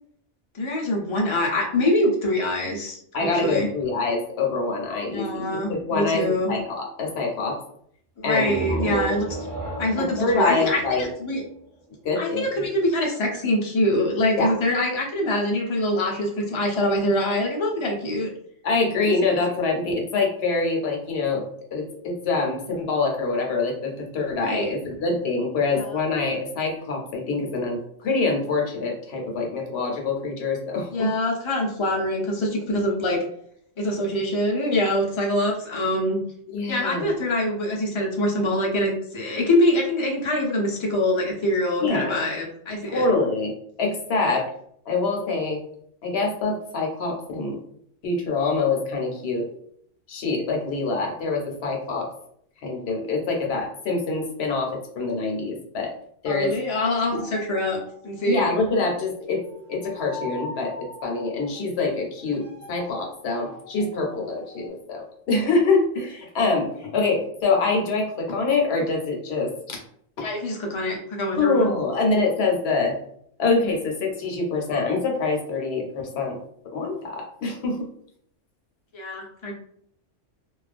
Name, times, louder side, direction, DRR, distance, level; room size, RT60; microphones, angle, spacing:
voice 1, 0.5-3.7 5.1-6.5 8.2-9.5 9.8-11.4 12.2-18.3 19.0-19.1 24.4-24.7 25.7-25.9 30.9-33.2 33.8-36.2 36.7-43.1 44.3-44.4 56.2-57.8 58.0-58.5 70.2-71.7 78.9-79.5, left 1 dB, 45° left, -1 dB, 0.4 m, -24 dB
voice 2, 3.1-7.6 8.2-9.0 10.0-11.0 12.0-12.5 14.4-14.5 18.6-21.5 21.7-31.2 36.5-37.1 41.8-42.2 42.8-43.5 43.8-44.5 44.9-45.6 46.0-47.6 48.0-49.5 50.1-52.1 52.6-55.9 56.2-56.6 57.1-57.2 58.2-59.4 59.7-69.8 70.2-70.3 71.4-73.0 73.4-76.4 76.6-77.9, left 3 dB, 60° left, 1 dB, 0.8 m, -25 dB
sound 1, 8.3-11.9, right 2 dB, 20° right, 1.0 m, -32 dB
sound 2, 56.5-59.1 59.4-64.7, left 1 dB, 80° right, 1.0 m, -43 dB
2.3 x 2.2 x 2.4 m, 0.68 s
omnidirectional pair, 1.3 m